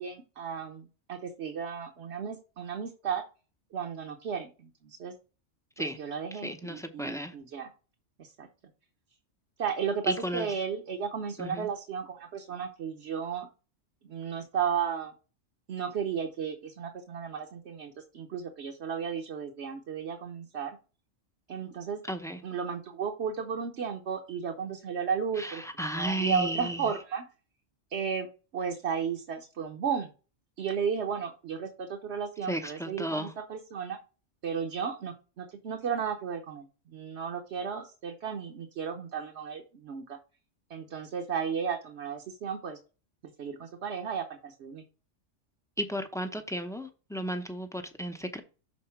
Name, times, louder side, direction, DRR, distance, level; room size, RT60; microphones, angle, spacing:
voice 1, 0.0-3.2 3.7-5.1 5.8-7.7 8.2-8.5 9.6-13.5 14.0-15.1 15.7-20.8 21.5-22.0 22.4-27.2 27.9-30.1 30.6-34.0 34.4-40.2 40.7-42.8 43.4-44.8, right 7 dB, 65° right, 1.1 m, -34 dB
voice 2, 6.4-7.3 10.1-10.5 11.4-11.7 22.1-22.4 25.4-26.8 32.5-33.3 45.8-48.4, equal, 5° left, 0.5 m, -33 dB
6.4 x 3.9 x 5.7 m
omnidirectional pair, 1.3 m